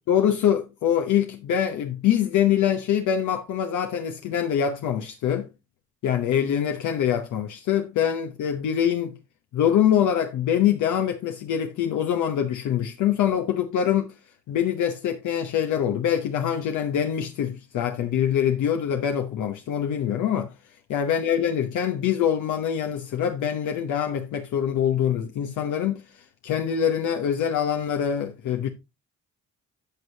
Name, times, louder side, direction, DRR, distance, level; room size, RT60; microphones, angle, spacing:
voice 1, 0.1-5.5 6.0-9.2 9.5-14.1 14.5-20.5 20.9-28.7, left 9 dB, 75° left, 0.9 m, -24 dB
11.5 x 6.4 x 2.8 m
cardioid pair, 90°, 30 cm